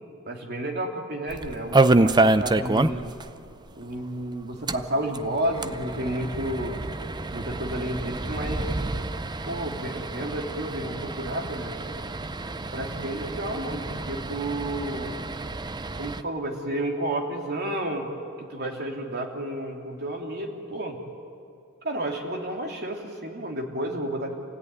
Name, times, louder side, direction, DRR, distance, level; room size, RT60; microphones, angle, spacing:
voice 1, 0.3-3.2 3.7-6.8 7.3-8.7 9.4-11.7 12.7-15.1 16.0-18.1 18.4-21.0 21.8-24.3, right 1 dB, 50° right, 1 dB, 3.1 m, -31 dB
sound 1, 1.3-3.3 3.5-3.6 3.9-4.0 4.5-16.2, right 2 dB, 20° right, 0.5 m, -27 dB
28.5 x 16.5 x 9.7 m, 2.5 s
head